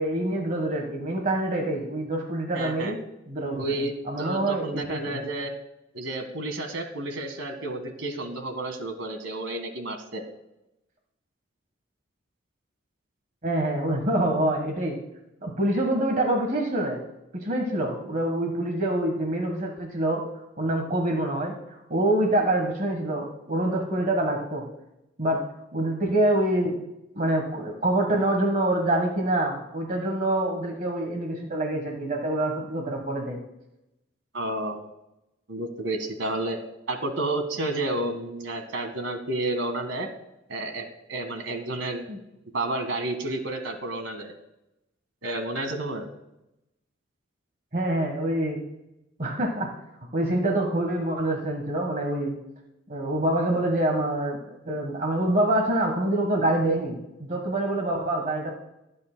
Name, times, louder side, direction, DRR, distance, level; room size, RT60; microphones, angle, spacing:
voice 1, 0.0-3.0 3.3-5.2 13.4-15.0 15.4-17.0 17.4-20.2 20.6-24.6 25.2-25.4 25.7-26.8 27.2-33.4 42.1-42.2 47.7-48.6 49.2-49.7 50.1-52.3 52.9-54.4 54.6-58.5, right 1 dB, 45° right, 2 dB, 1.3 m, -26 dB
voice 2, 2.5-2.9 3.5-5.5 5.9-10.2 34.3-34.8 35.5-36.6 36.9-40.1 40.5-42.0 42.5-44.3 45.2-46.1, right 2 dB, 80° right, 6 dB, 1.6 m, -31 dB
23.5 x 8.6 x 2.2 m, 0.89 s
head